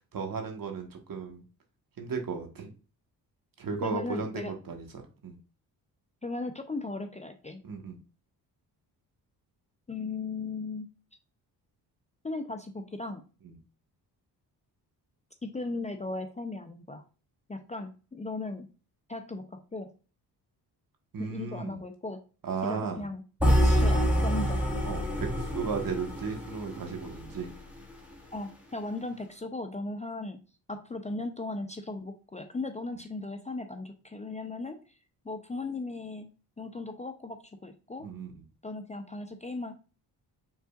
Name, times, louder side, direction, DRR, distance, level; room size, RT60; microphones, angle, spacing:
voice 1, 0.1-1.4 2.0-2.7 3.6-5.4 7.6-8.0 21.1-21.8 22.4-23.1 24.8-27.5 38.0-38.3, right 5 dB, 50° right, 3 dB, 1.4 m, -35 dB
voice 2, 3.8-4.5 6.2-7.6 9.9-10.9 12.2-13.2 15.4-17.0 17.5-18.7 19.1-19.9 21.2-22.2 22.6-24.6 28.3-30.4 30.7-34.8 35.2-36.3 36.6-38.1 38.6-39.7, left 3 dB, 15° left, 6 dB, 0.5 m, -37 dB
sound 1, 23.4-27.5, equal, 5° right, 1.6 m, -26 dB
5.4 x 3.7 x 2.4 m, 0.35 s
cardioid pair, 70°, 42 cm